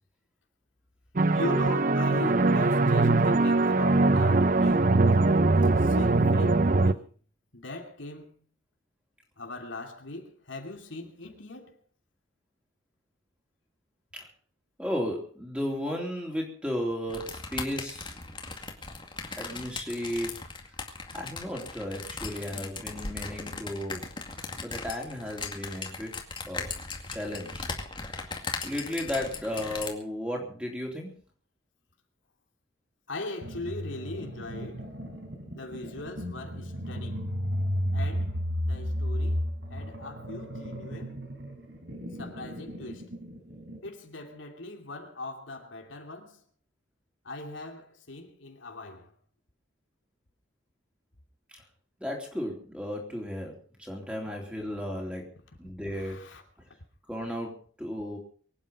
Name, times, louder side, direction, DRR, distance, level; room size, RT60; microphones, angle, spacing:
sound 1, 1.2-6.9, right 3 dB, 45° right, 0.6 m, -22 dB
voice 1, 1.3-5.0 5.5-7.1 7.5-8.3 9.4-11.8 33.1-34.9 35.5-37.2 37.9-41.2 42.2-43.1 43.8-46.4 47.2-49.1 55.9-56.4, left 2 dB, 75° left, 2.9 m, -40 dB
voice 2, 14.8-18.1 19.4-20.3 21.1-24.0 24.6-26.1 26.5-26.6 27.1-27.6 28.6-31.1 51.5-51.6 52.0-55.3 55.6-56.2 57.1-58.2, left 1 dB, 5° right, 3.7 m, -34 dB
sound 2, 17.1-29.9, left 4 dB, 25° left, 2.2 m, -38 dB
sound 3, 33.4-43.9, equal, 65° right, 4.2 m, -34 dB
24.0 x 9.5 x 5.4 m
head